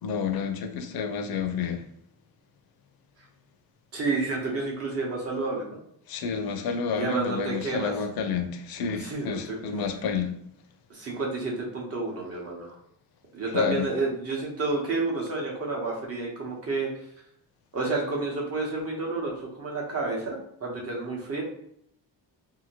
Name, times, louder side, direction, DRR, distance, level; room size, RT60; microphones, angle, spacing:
voice 1, 0.0-1.8 6.1-10.3 13.5-13.9, left 6 dB, 60° left, 0.5 m, -30 dB
voice 2, 3.9-5.8 7.0-7.9 9.0-9.6 10.9-12.8 13.3-16.9 17.7-21.4, right 3 dB, 35° right, 0.9 m, -30 dB
2.7 x 2.6 x 2.9 m
cardioid pair, 150°, 41 cm